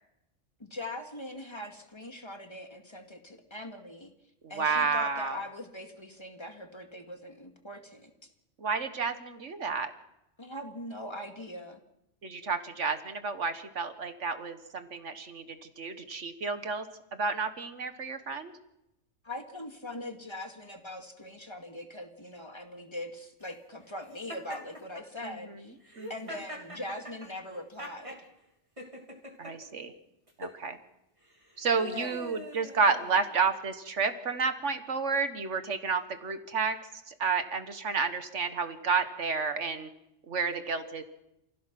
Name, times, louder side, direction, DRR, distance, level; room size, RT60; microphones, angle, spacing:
voice 1, 0.6-4.1 4.5-8.3 10.4-11.8 19.2-25.7 26.1-28.3 31.8-32.2, left 1 dB, 20° left, 4 dB, 2.1 m, -41 dB
voice 2, 4.6-5.4 8.6-9.9 12.2-16.9 17.1-18.5 25.2-25.6 26.0-26.1 29.4-29.9 30.4-30.8 31.6-36.8 37.1-39.9 40.3-41.0, right 5 dB, 65° right, 9 dB, 1.8 m, -31 dB
Laughter, 24.3-25.0 25.8-28.2 28.8-29.5 30.3-30.6 31.3-33.5, equal, 25° right, 3.3 m, -44 dB
28.5 x 16.5 x 6.0 m, 0.86 s
omnidirectional pair, 1.3 m